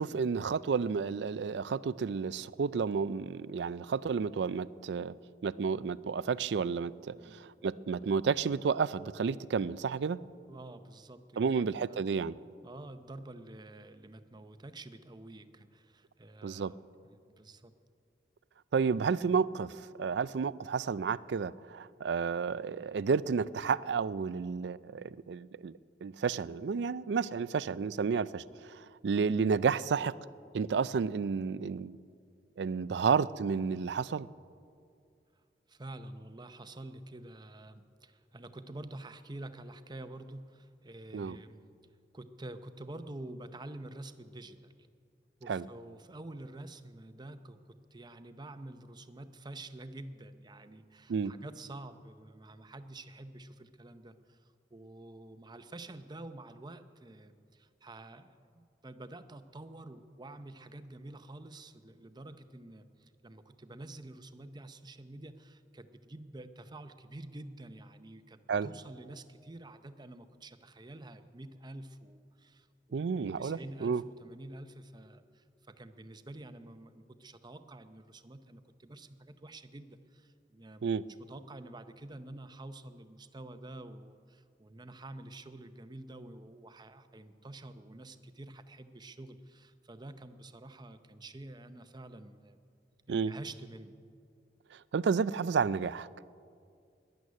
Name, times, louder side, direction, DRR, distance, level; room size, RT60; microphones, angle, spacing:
voice 1, 0.0-5.1 5.4-10.2 11.4-12.3 16.4-16.7 18.7-25.7 26.0-30.1 30.5-32.0 32.6-34.3 41.1-41.4 45.5-45.7 51.1-51.3 68.5-68.7 72.9-74.0 80.8-81.0 93.1-93.3 94.7-96.1, right 5 dB, 70° right, 18 dB, 0.4 m, -31 dB
voice 2, 7.1-7.4 10.5-12.0 12.6-16.8 17.0-17.7 35.7-41.7 42.1-44.7 45.4-80.9 81.2-92.6 93.1-94.0, right 2 dB, 25° right, 10 dB, 0.7 m, -48 dB
12.5 x 10.5 x 9.7 m, 2.3 s
head